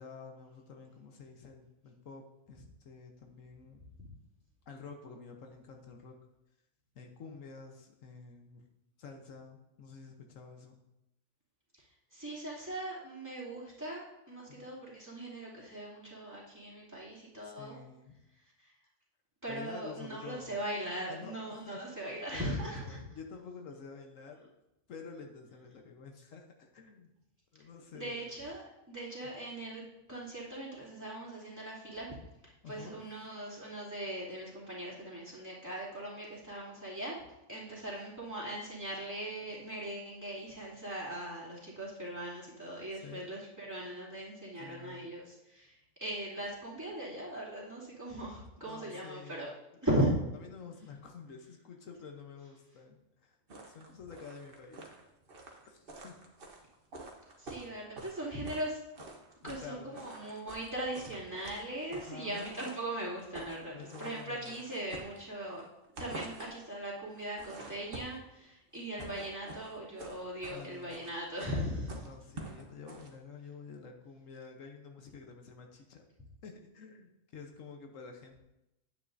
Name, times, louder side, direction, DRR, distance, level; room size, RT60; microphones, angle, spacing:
voice 1, 0.0-3.8 4.7-6.1 6.9-8.7 9.0-10.8 14.5-14.7 17.4-18.2 19.5-20.6 21.0-24.5 24.9-27.1 27.5-28.3 32.6-33.0 43.0-43.3 44.6-45.1 48.6-49.5 50.4-53.4 53.6-54.9 55.7-56.2 59.4-60.0 61.9-62.5 63.7-64.6 69.0-69.2 70.5-71.1 72.0-76.0 76.4-78.4, left 5 dB, 75° left, 3 dB, 1.3 m, -49 dB
voice 2, 12.1-17.8 19.4-23.0 27.9-29.8 30.1-32.1 32.7-37.2 37.5-49.5 49.8-50.1 57.4-58.8 59.4-65.6 66.0-72.0, right 1 dB, 15° right, -7 dB, 2.5 m, -39 dB
sound 1, 53.5-58.7 59.0-59.7 59.9-62.9 63.2-63.6 63.9-65.5 65.8-66.7 67.1-68.3 68.7-73.1, right 2 dB, 45° right, 1.2 m, -47 dB
9.5 x 8.8 x 2.6 m, 0.92 s
omnidirectional pair, 1.3 m